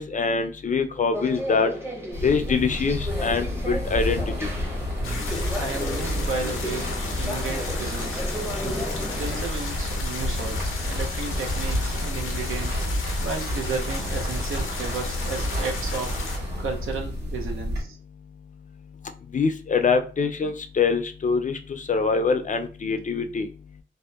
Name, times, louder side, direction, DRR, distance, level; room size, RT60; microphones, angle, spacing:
voice 1, 0.0-1.7 2.2-4.5 19.3-23.5, left 5 dB, 40° left, 7 dB, 0.4 m, -24 dB
sound 1, 1.1-9.5, equal, 10° right, 0.6 m, -34 dB
sound 2, 2.1-17.8, left 1 dB, 55° right, 1.3 m, -30 dB
sound 3, 5.0-16.4, left 3 dB, 85° left, 0.6 m, -35 dB
voice 2, 5.6-6.9 7.2-8.2 8.6-8.8 9.2-12.8 13.2-16.2 16.6-18.0, right 4 dB, 90° right, 3 dB, 0.6 m, -33 dB
2.7 x 2.1 x 2.2 m, 0.37 s
cardioid pair, 55°, 21 cm